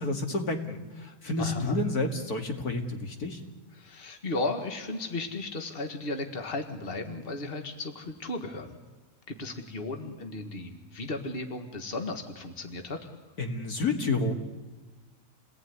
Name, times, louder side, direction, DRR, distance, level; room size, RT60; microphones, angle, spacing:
voice 1, 0.0-3.4 13.4-14.3, left 2 dB, 70° left, 4 dB, 2.8 m, -30 dB
voice 2, 1.4-1.8 3.7-8.8 9.3-13.0, left 2 dB, 35° left, 5 dB, 2.1 m, -35 dB
29.0 x 19.0 x 9.7 m, 1.3 s
omnidirectional pair, 1.7 m